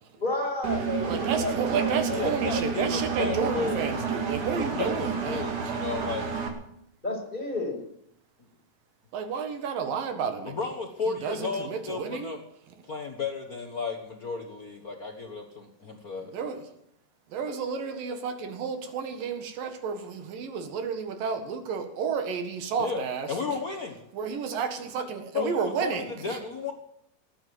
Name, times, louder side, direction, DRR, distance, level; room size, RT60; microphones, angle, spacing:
voice 1, 0.2-2.3 7.0-7.8, left 2 dB, 15° left, 0 dB, 5.3 m, -31 dB
Engine, 0.6-6.5, right 6 dB, 65° right, 3.8 m, -30 dB
voice 2, 1.1-5.7 9.1-10.6 11.1-12.4 16.2-16.6 17.3-23.6 24.1-26.4, right 6 dB, 80° right, 8 dB, 3.4 m, -31 dB
voice 3, 2.1-3.9 4.8-6.3 10.6-12.4 12.9-16.3 22.8-23.9 25.3-25.9 26.2-26.7, left 4 dB, 70° left, 3 dB, 0.8 m, -33 dB
19.0 x 9.1 x 7.8 m, 0.74 s
omnidirectional pair, 3.9 m